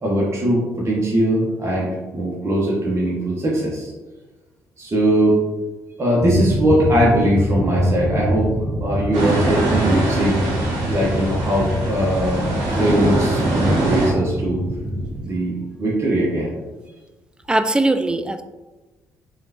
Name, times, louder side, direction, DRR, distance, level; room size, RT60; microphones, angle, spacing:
voice 1, 0.0-3.9 4.8-5.4 6.0-8.5 8.8-10.4 10.9-12.5 12.8-14.6 15.2-16.5, right 1 dB, 35° right, -5 dB, 1.1 m, -20 dB
sound 1, 6.2-15.2, right 1 dB, 20° left, 1.2 m, -25 dB
sound 2, 9.1-14.1, right 2 dB, 75° right, 0.9 m, -23 dB
voice 2, 17.5-18.4, right 2 dB, 10° right, 9 dB, 0.4 m, -20 dB
3.7 x 3.3 x 2.8 m, 1.2 s
hypercardioid pair, 50°, 8 cm